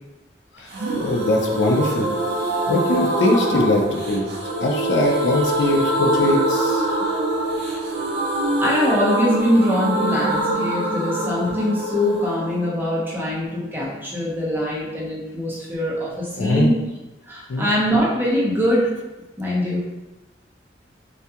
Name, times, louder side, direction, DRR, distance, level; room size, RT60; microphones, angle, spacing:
sound 1, 0.7-14.3 14.6-14.7 14.9-15.0, right 1 dB, 65° right, 0.5 m, -24 dB
voice 1, 1.0-2.1 2.7-4.3 4.6-6.8 16.4-16.7 17.5-17.7, left 1 dB, 85° left, 1 dB, 0.4 m, -21 dB
voice 2, 8.6-16.8 17.3-18.9 19.4-19.8, equal, 10° right, -6 dB, 0.6 m, -22 dB
2.3 x 2.2 x 2.7 m, 1.0 s
head